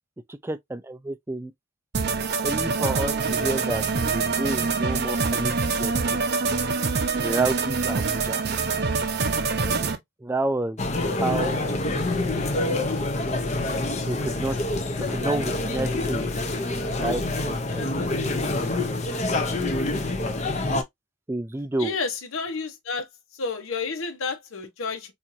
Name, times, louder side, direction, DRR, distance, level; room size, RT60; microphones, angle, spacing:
voice 1, 0.3-1.5 2.4-5.9 7.2-8.4 9.6-9.9 10.2-10.8 11.0-11.6 14.1-14.6 15.1-16.3 17.0-17.8 21.3-22.0, right 2 dB, 10° right, 0.3 m, -30 dB
sound 1, 1.9-10.0, right 4 dB, 50° right, 0.6 m, -25 dB
sound 2, 10.8-20.8, left 2 dB, 35° left, 0.6 m, -26 dB
voice 2, 21.8-23.1 23.3-25.1, left 4 dB, 85° left, 0.9 m, -30 dB
4.4 x 2.5 x 2.6 m
head